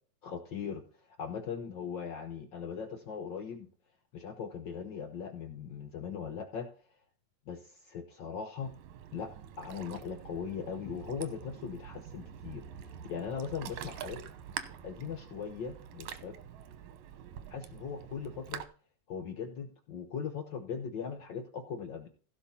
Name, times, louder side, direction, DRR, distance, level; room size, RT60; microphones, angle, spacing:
voice 1, 0.2-0.8 1.2-3.7 4.1-6.7 7.5-8.7 9.1-9.3 9.6-14.2 14.8-16.4 17.5-18.6 19.1-22.1, left 6 dB, 80° left, 7 dB, 1.0 m, -39 dB
Ocean, 8.6-18.7, right 9 dB, 75° right, 2.3 m, -46 dB
16.0 x 6.0 x 4.3 m, 0.42 s
omnidirectional pair, 3.4 m